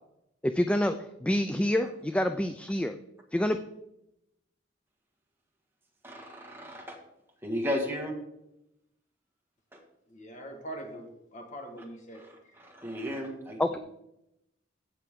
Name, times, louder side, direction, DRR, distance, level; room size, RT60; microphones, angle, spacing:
voice 1, 0.4-3.0 3.3-3.6 13.6-13.8, left 1 dB, 5° left, 9 dB, 0.3 m, -27 dB
voice 2, 6.0-7.0 7.4-8.1 9.7-9.8 12.1-13.6, equal, 10° right, 0 dB, 1.8 m, -34 dB
voice 3, 10.1-12.5, right 1 dB, 40° left, 3 dB, 1.7 m, -43 dB
16.0 x 5.8 x 3.6 m, 0.85 s
head